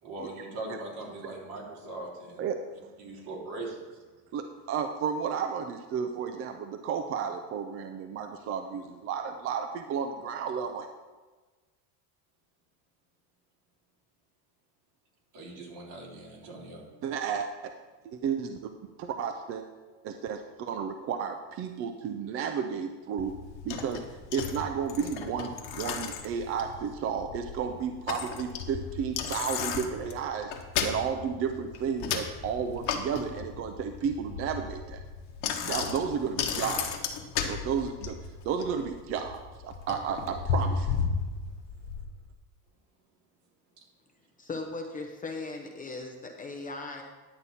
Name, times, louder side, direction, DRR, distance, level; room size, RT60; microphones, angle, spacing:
voice 1, 0.0-2.5 3.0-3.8 15.3-16.8, right 2 dB, 60° right, -3 dB, 3.4 m, -40 dB
voice 2, 2.4-2.9 4.3-10.9 17.0-17.7 18.0-18.7 19.0-19.6 20.0-23.3 23.6-24.0 24.3-30.5 30.8-35.0 35.6-37.0 37.5-38.2 38.4-40.9, right 7 dB, 35° right, 6 dB, 0.4 m, -32 dB
Bicycle, 23.2-42.0, left 6 dB, 60° left, 1.3 m, -35 dB
voice 3, 44.4-47.0, left 3 dB, 20° left, 3 dB, 0.7 m, -38 dB
10.5 x 8.2 x 4.2 m, 1.3 s
cardioid pair, 160°, 44 cm